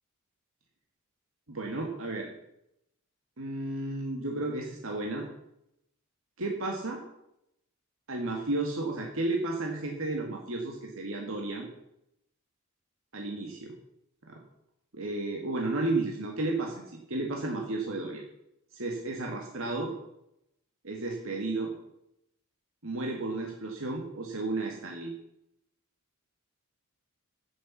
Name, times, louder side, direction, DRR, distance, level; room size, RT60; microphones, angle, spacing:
voice 1, 1.5-2.3 3.4-5.3 6.4-7.0 8.1-11.7 13.1-13.7 14.3-14.4 14.9-18.2 18.7-19.9 20.8-21.7 22.8-25.1, right 2 dB, 65° right, 1 dB, 1.9 m, -33 dB
10.0 x 9.2 x 7.1 m, 0.81 s
head